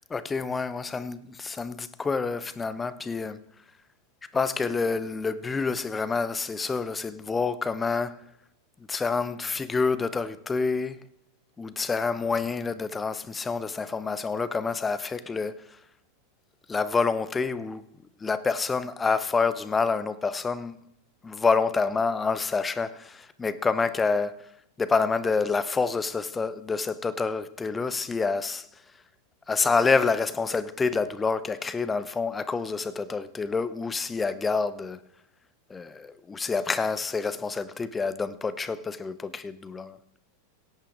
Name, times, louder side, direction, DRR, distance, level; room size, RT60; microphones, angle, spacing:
voice 1, 0.1-3.4 4.3-8.2 8.9-11.0 11.6-15.6 16.7-17.8 18.2-20.7 21.2-24.4 24.8-28.7 29.5-35.0 35.7-40.0, left 4 dB, 15° left, 0.8 m, -27 dB
17.5 x 8.6 x 3.6 m
figure-of-eight pair, 90°, 0 cm